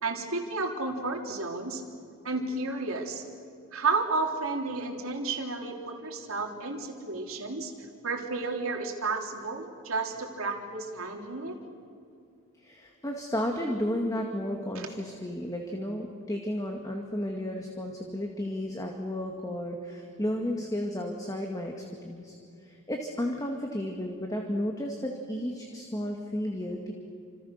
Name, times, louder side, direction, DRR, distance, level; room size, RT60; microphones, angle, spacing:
voice 1, 0.0-1.8 2.2-3.2 3.7-7.7 8.0-11.6 14.8-14.9, right 3 dB, 70° right, 2 dB, 3.5 m, -32 dB
voice 2, 12.6-21.7 22.0-22.4 22.6-26.9, left 1 dB, 15° left, 2 dB, 2.1 m, -33 dB
29.5 x 27.0 x 6.7 m, 2.5 s
head